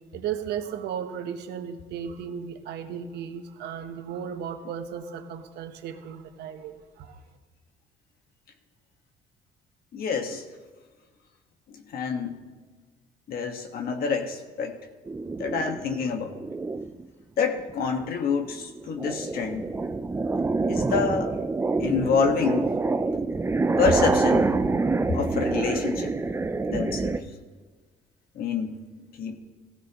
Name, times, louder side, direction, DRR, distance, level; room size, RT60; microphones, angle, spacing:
voice 1, 0.1-7.2, right 8 dB, 75° right, 7 dB, 1.2 m, -35 dB
voice 2, 9.9-10.4 11.9-12.4 13.3-14.8 15.4-16.4 17.4-19.6 20.7-21.3 21.8-22.7 23.8-24.5 25.1-26.2 26.7-27.2 28.4-28.8 29.2-29.3, left 5 dB, 60° left, 5 dB, 1.6 m, -27 dB
sound 1, 15.1-17.1 17.6-18.0 18.4-27.2, right 3 dB, 15° right, 0.5 m, -26 dB
16.5 x 14.5 x 3.1 m, 1.4 s
cardioid pair, 110°, 17 cm